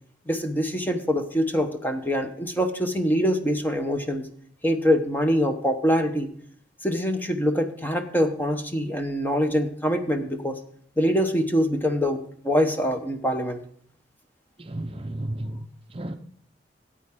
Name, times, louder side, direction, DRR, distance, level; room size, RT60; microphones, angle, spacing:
voice 1, 0.3-4.2 4.6-6.3 6.8-10.6 11.0-13.6, equal, 10° left, 1.0 m, -24 dB
voice 2, 14.6-16.2, right 1 dB, 30° right, 0.6 m, -33 dB
14.0 x 8.8 x 3.6 m
head